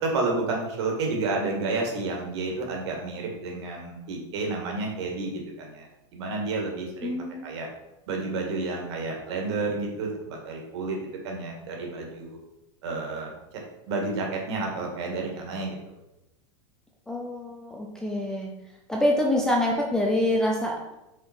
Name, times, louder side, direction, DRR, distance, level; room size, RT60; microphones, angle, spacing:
voice 1, 0.0-5.9 6.1-7.2 7.4-7.7 8.1-11.0 11.2-12.4 12.8-13.3 13.9-15.9, right 3 dB, 60° right, 0 dB, 1.9 m, -30 dB
voice 2, 7.0-7.5 17.1-18.5 18.9-20.9, left 1 dB, 5° left, -1 dB, 0.4 m, -26 dB
5.7 x 4.7 x 4.5 m, 0.92 s
supercardioid pair, 170°, 16 cm